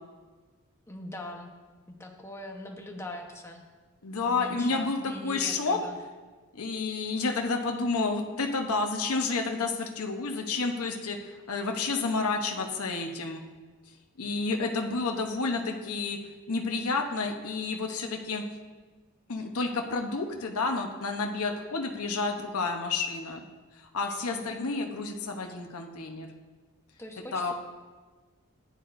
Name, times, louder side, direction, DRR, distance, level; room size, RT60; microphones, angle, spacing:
voice 1, 0.9-1.5 2.0-3.6 4.2-6.0 24.2-24.6 27.0-27.5, left 1 dB, 10° left, 1 dB, 1.0 m, -41 dB
voice 2, 4.0-5.8 6.5-13.4 14.2-16.2 16.5-18.4 19.3-23.4 23.8-26.3 27.3-27.5, left 3 dB, 75° left, 3 dB, 0.9 m, -30 dB
14.0 x 9.8 x 2.6 m, 1.3 s
head